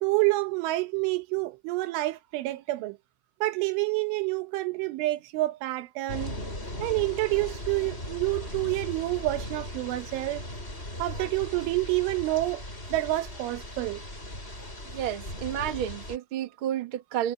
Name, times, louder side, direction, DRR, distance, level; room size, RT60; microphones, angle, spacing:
voice 1, 0.0-3.0 3.4-6.4 6.8-10.5 11.0-12.6 12.9-14.0, right 19 dB, 85° right, 3.6 m, -28 dB
sound 1, 6.1-16.2, left 1 dB, 10° left, 7.3 m, -38 dB
voice 2, 14.9-17.3, right 10 dB, 70° right, 1.2 m, -31 dB
omnidirectional pair, 5.4 m